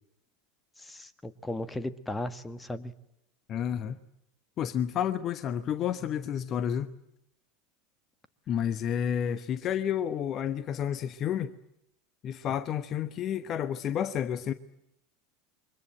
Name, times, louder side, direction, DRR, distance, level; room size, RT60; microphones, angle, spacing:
voice 1, 0.8-2.9, left 1 dB, 10° left, 1.7 m, -36 dB
voice 2, 3.5-4.0 4.6-7.0 8.5-11.5 12.2-14.5, left 9 dB, 35° left, 1.1 m, -30 dB
28.5 x 24.5 x 7.9 m
figure-of-eight pair, 80°, 0 cm